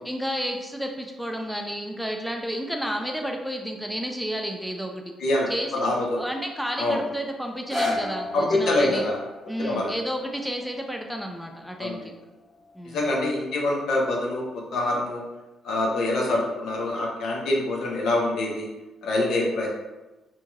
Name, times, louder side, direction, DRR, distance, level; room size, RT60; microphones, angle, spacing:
voice 1, 0.0-5.0 5.5-5.7 6.2-9.0 9.5-12.0 12.7-13.0, equal, ahead, 3 dB, 0.3 m, -31 dB
voice 2, 5.2-6.2 6.8-7.0 8.3-9.2 9.6-9.9 11.8-12.0 12.8-15.2 15.6-18.7 19.0-19.7, left 2 dB, 70° left, -2 dB, 0.7 m, -25 dB
sound 1, 7.4-13.5 14.2-14.3, left 2 dB, 35° left, 1.3 m, -35 dB
2.8 x 2.7 x 2.4 m, 1.1 s
cardioid pair, 90°, 0 cm